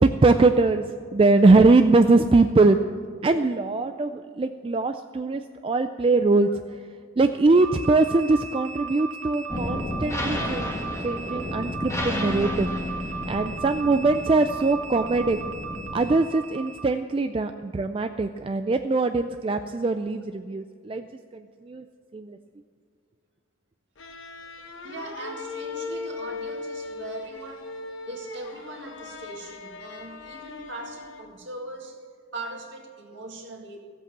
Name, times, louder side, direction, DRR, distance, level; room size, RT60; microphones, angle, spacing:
voice 1, 0.0-2.8 3.2-6.5 7.2-12.7 13.3-15.4 15.9-21.1 21.3-21.8 22.1-22.4, right 3 dB, 25° right, 8 dB, 0.3 m, -22 dB
sound 1, 7.5-16.9, right 5 dB, 85° right, 1.7 m, -37 dB
sound 2, 9.5-16.1, left 1 dB, 15° left, 1.8 m, -32 dB
sound 3, 24.0-31.5, left 3 dB, 65° left, 1.1 m, -38 dB
voice 2, 24.4-27.7 28.1-32.0 32.3-33.8, right 2 dB, 55° right, 1 dB, 1.9 m, -40 dB
15.0 x 8.0 x 7.4 m, 2.1 s
head